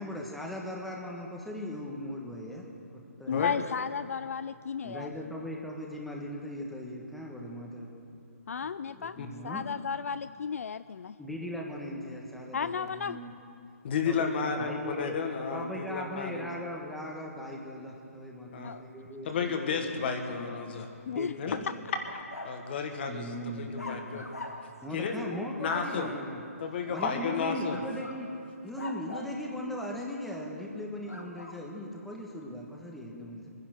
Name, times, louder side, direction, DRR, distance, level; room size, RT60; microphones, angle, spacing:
voice 1, 0.0-2.6 3.2-3.5 4.8-7.9 8.9-9.6 11.2-13.3 14.0-15.1 15.5-20.5 21.1-21.6 23.1-23.7 24.1-24.3 24.8-26.4 26.9-28.3 28.6-33.5, left 1 dB, ahead, -2 dB, 1.4 m, -39 dB
voice 2, 3.3-5.1 8.5-9.2 9.4-11.1 12.5-13.2 18.6-18.8 21.1-21.3 25.1-25.5, left 6 dB, 65° left, 14 dB, 0.3 m, -34 dB
voice 3, 13.8-16.5 18.5-18.8 19.2-20.9 21.4-21.6 22.4-24.3 24.9-25.2 25.6-26.1 26.6-27.8, left 5 dB, 45° left, 5 dB, 1.8 m, -32 dB
sound 1, 22.1-22.6 23.8-24.8 25.7-26.0 26.9-27.3 27.7-28.2 28.8-29.4 31.1-31.6, left 2 dB, 90° left, 1.8 m, -42 dB
21.0 x 10.5 x 6.4 m, 2.5 s
figure-of-eight pair, 145°, 8 cm